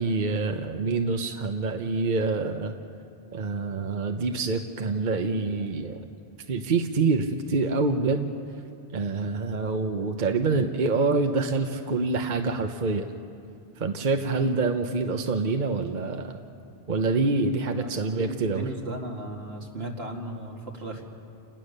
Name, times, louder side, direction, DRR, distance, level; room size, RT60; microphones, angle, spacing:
voice 1, 0.0-2.7 3.3-6.1 6.5-8.3 8.9-13.1 13.8-16.4 16.9-18.7, right 3 dB, 50° right, 6 dB, 1.0 m, -26 dB
voice 2, 17.7-21.0, right 1 dB, 80° right, 0 dB, 2.5 m, -36 dB
29.0 x 18.0 x 6.7 m, 2.5 s
omnidirectional pair, 1.0 m